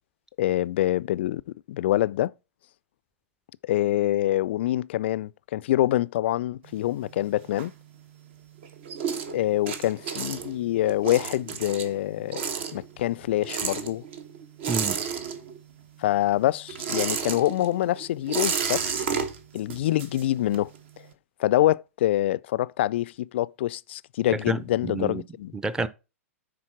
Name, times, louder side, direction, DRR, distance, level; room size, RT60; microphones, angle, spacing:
voice 1, 0.4-1.4 1.7-2.3 3.6-7.7 9.3-12.4 12.7-14.0 16.0-19.1 19.5-20.7 21.4-25.5, left 14 dB, 50° left, 0.3 m, -25 dB
sound 1, 6.6-8.3 8.6-15.8 16.1-20.8, right 6 dB, 50° right, 1.2 m, -32 dB
voice 2, 14.7-15.0 24.3-25.2 25.5-25.9, right 3 dB, 10° right, 0.6 m, -29 dB
9.9 x 4.2 x 4.5 m
figure-of-eight pair, 110°, 8 cm